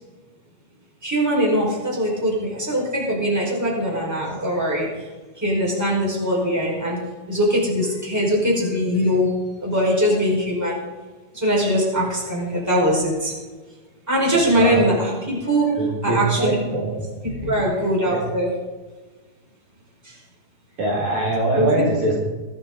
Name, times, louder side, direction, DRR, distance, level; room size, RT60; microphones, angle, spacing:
voice 1, 1.0-4.9 5.4-7.0 7.3-9.3 9.6-10.8 11.3-13.3 14.1-16.5 17.2-18.5 20.0-20.2 21.6-21.9, equal, 5° right, -4 dB, 4.4 m, -21 dB
voice 2, 14.3-14.8 15.8-17.1 17.4-17.5 18.0-18.2 20.8-22.1, right 2 dB, 50° right, -4 dB, 3.5 m, -23 dB
23.0 x 8.6 x 3.9 m, 1.3 s
omnidirectional pair, 4.5 m